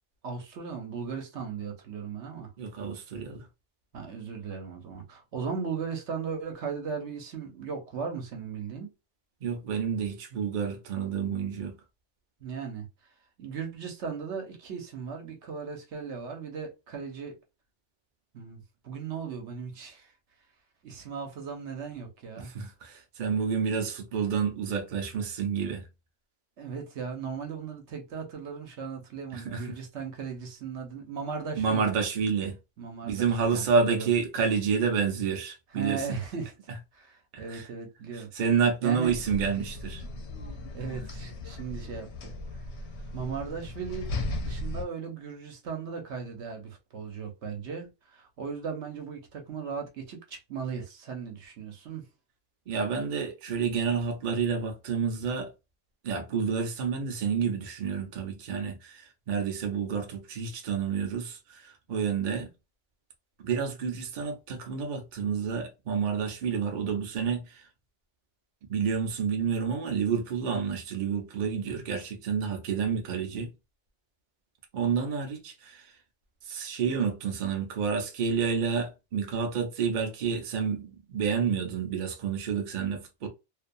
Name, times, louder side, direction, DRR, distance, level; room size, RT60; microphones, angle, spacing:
voice 1, 0.2-2.5 3.9-8.9 12.4-12.9 13.4-17.3 18.3-20.1 20.8-22.5 26.6-31.9 32.8-34.1 35.7-36.5 36.9-38.3 38.8-39.1 40.7-42.3 43.1-52.1, right 6 dB, 75° right, 1.1 m, -37 dB
voice 2, 2.6-3.5 9.4-11.7 22.4-25.8 29.3-29.6 31.6-32.5 33.0-36.1 37.3-37.7 38.1-40.0 52.7-55.5 56.0-62.5 63.4-67.7 68.7-73.5 74.7-75.9 76.4-83.3, right 6 dB, 50° right, 0.7 m, -29 dB
sound 1, 39.1-44.8, left 2 dB, 70° left, 0.9 m, -37 dB
2.5 x 2.2 x 2.5 m
omnidirectional pair, 1.2 m